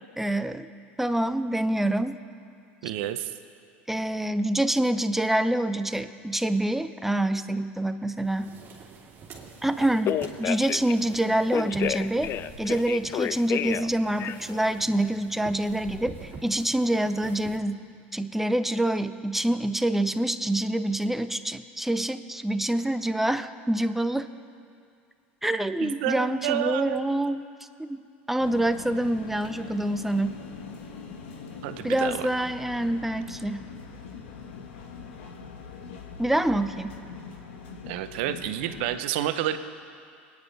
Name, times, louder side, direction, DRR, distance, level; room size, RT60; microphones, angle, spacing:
voice 1, 0.2-0.7 1.0-2.2 3.9-8.5 9.6-12.3 12.6-17.8 18.1-24.3 25.4-27.4 27.8-28.0 28.3-30.4 31.8-33.7 36.2-36.9, right 1 dB, 5° right, 11 dB, 0.7 m, -26 dB
voice 2, 2.8-3.3 25.8-27.0 31.6-32.3 37.9-39.6, right 12 dB, 65° right, 10 dB, 0.8 m, -29 dB
sound 1, 8.2-17.6, right 4 dB, 35° right, 2.8 m, -45 dB
Telephone, 9.8-10.9 11.5-13.9 14.2-14.6, left 11 dB, 40° left, 0.4 m, -30 dB
sound 2, 28.4-39.0, left 5 dB, 75° left, 1.5 m, -42 dB
25.5 x 9.9 x 3.4 m, 2.3 s
hypercardioid pair, 85°, 6 cm